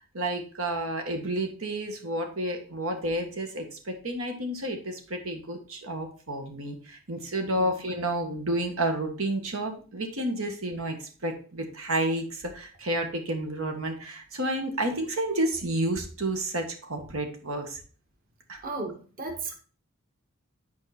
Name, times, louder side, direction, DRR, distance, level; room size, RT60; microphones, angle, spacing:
voice 1, 0.1-17.8 18.5-18.6, right 1 dB, 85° right, 4 dB, 1.7 m, -30 dB
voice 2, 18.6-19.6, right 3 dB, 45° right, 4 dB, 1.4 m, -35 dB
9.5 x 4.9 x 4.3 m, 0.39 s
head